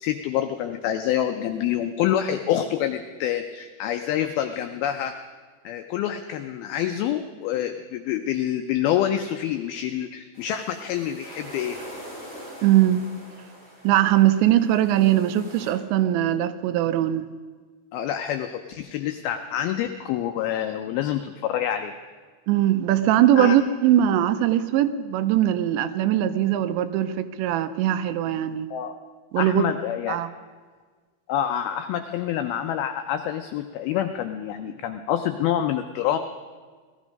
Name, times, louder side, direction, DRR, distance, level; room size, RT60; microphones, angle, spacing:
voice 1, 0.0-5.1 5.7-11.8 17.9-21.9 23.4-23.5 28.7-28.9 29.4-30.2 31.3-36.2, left 10 dB, 90° left, 6 dB, 2.1 m, -27 dB
sound 1, 10.3-15.7, equal, 10° right, 4.4 m, -43 dB
voice 2, 12.6-13.0 13.8-17.3 22.5-28.7 29.3-29.7 30.1-30.3, right 12 dB, 85° right, 11 dB, 2.9 m, -21 dB
18.5 x 13.5 x 5.2 m, 1.5 s
omnidirectional pair, 5.2 m